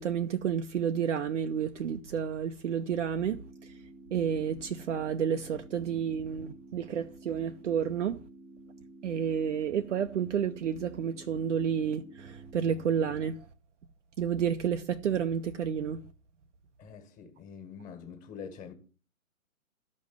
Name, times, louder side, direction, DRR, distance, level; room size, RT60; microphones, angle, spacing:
voice 1, 0.0-3.7 4.1-8.2 9.0-13.4 14.2-16.0, right 8 dB, 60° right, 0.8 m, -30 dB
sound 1, 3.3-13.3, right 2 dB, 5° right, 1.0 m, -52 dB
voice 2, 16.8-18.7, left 6 dB, 20° left, 1.9 m, -45 dB
13.5 x 5.3 x 7.2 m
figure-of-eight pair, 130°, 42 cm